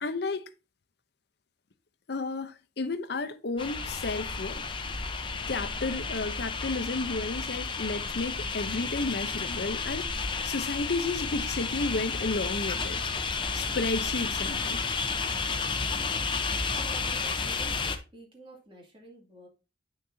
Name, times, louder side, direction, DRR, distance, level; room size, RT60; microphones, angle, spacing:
voice 1, 0.0-0.5 2.1-4.6 5.2-13.0 13.5-14.8, left 3 dB, 60° left, 0.7 m, -32 dB
sound 1, 3.6-18.0, left 4 dB, 25° left, 0.7 m, -32 dB
voice 2, 16.7-17.9 18.1-19.5, right 2 dB, 30° right, 2.3 m, -49 dB
9.1 x 6.5 x 2.7 m
head